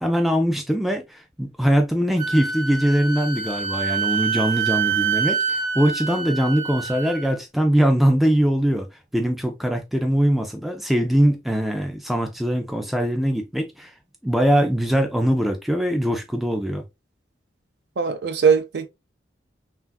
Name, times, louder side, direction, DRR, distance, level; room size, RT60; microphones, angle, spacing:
voice 1, 0.0-8.9 9.1-13.9 14.2-16.8, equal, ahead, 0.3 m, -22 dB
Wind instrument woodwind instrument, 2.2-7.3, right 6 dB, 40° right, 1.1 m, -26 dB
voice 2, 18.0-18.9, right 6 dB, 60° right, 0.5 m, -20 dB
3.3 x 2.4 x 2.2 m
head